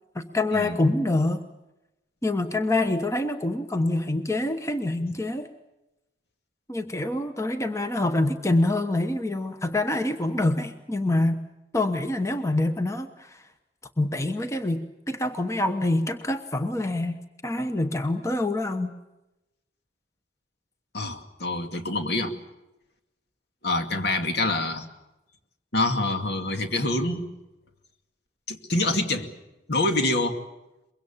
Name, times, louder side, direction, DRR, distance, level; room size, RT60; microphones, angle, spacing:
voice 1, 0.1-1.4 2.2-5.5 6.7-11.4 11.7-13.4 14.0-18.9, left 2 dB, 15° left, 8 dB, 1.1 m, -26 dB
voice 2, 20.9-22.3 23.6-24.8 25.7-27.2 28.5-29.3 29.7-30.4, left 2 dB, 65° left, 6 dB, 2.4 m, -26 dB
24.0 x 22.5 x 7.3 m, 0.97 s
head